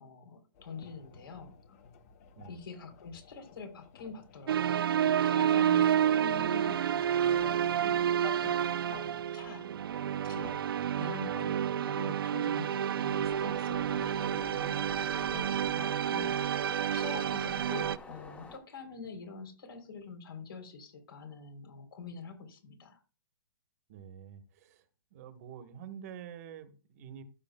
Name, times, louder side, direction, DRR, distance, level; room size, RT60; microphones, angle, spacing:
voice 1, 0.0-1.8 2.5-9.9 10.2-10.5 11.0-16.6 16.9-23.0, left 4 dB, 80° left, 3.3 m, -46 dB
sound 1, 0.5-10.8, left 6 dB, 45° left, 1.1 m, -55 dB
sound 2, 4.5-18.0, right 9 dB, 80° right, 0.5 m, -29 dB
sound 3, 13.0-18.6, left 3 dB, 10° left, 0.9 m, -49 dB
voice 2, 23.9-24.8 25.1-27.2, right 8 dB, 45° right, 1.2 m, -47 dB
15.0 x 6.7 x 2.2 m
hypercardioid pair, 155°, 12 cm